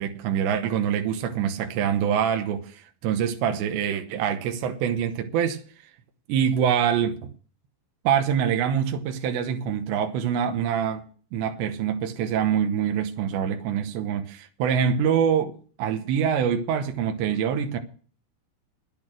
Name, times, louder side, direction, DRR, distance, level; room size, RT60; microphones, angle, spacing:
voice 1, 0.0-5.6 6.3-7.3 8.0-11.0 11.3-17.8, right 8 dB, 90° right, 3.3 m, -25 dB
10.5 x 10.5 x 6.3 m
omnidirectional pair, 4.9 m